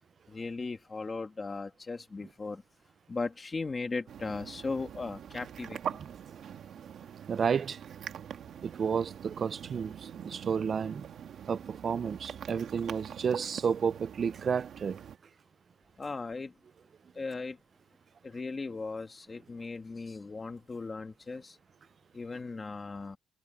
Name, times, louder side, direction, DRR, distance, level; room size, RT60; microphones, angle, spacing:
voice 1, 0.3-2.6 3.1-6.0 16.0-16.5 17.1-17.6 18.2-21.6 22.1-23.2, left 3 dB, 20° left, 1.4 m, -37 dB
sound 1, 4.1-15.2, right 8 dB, 45° right, 1.5 m, -44 dB
voice 2, 7.3-7.8 8.6-11.1 11.5-15.0, right 6 dB, 30° right, 0.3 m, -31 dB
cardioid pair, 175°, 0 cm